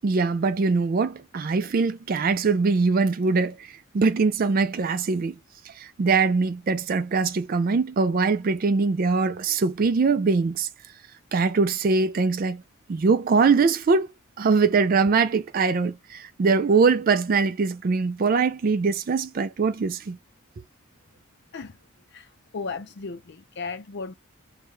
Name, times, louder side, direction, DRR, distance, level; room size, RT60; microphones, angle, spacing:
voice 1, 0.0-5.4 5.8-10.7 11.3-12.6 12.9-14.1 14.4-20.2, right 4 dB, 45° right, 0.3 m, -22 dB
voice 2, 22.5-24.2, left 4 dB, 55° left, 0.5 m, -35 dB
5.6 x 2.2 x 3.1 m
head